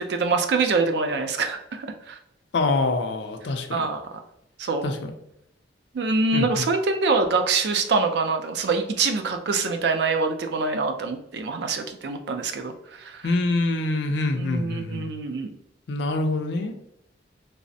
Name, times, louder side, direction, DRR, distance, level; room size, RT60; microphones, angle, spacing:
voice 1, 0.0-2.2 3.7-4.0 4.6-4.9 5.9-12.7 13.0-13.2 14.3-15.5, right 4 dB, 65° right, 6 dB, 0.4 m, -25 dB
voice 2, 2.5-3.9 4.8-5.1 6.3-6.7 13.2-15.1 15.9-16.8, left 2 dB, 70° left, 6 dB, 0.4 m, -25 dB
3.2 x 2.0 x 2.6 m, 0.78 s
head